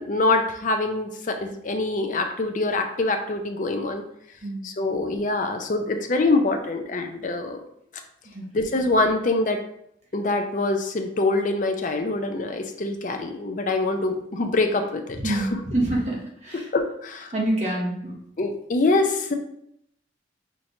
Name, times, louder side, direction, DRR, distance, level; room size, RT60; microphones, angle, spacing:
voice 1, 0.0-4.0 4.6-7.6 8.5-9.6 10.1-15.5 16.7-17.3 18.4-19.3, left 2 dB, 45° left, 5 dB, 0.5 m, -24 dB
voice 2, 15.2-16.2 16.4-16.6 17.3-18.1, right 1 dB, 40° right, -3 dB, 1.0 m, -26 dB
5.7 x 3.1 x 2.7 m, 0.73 s
head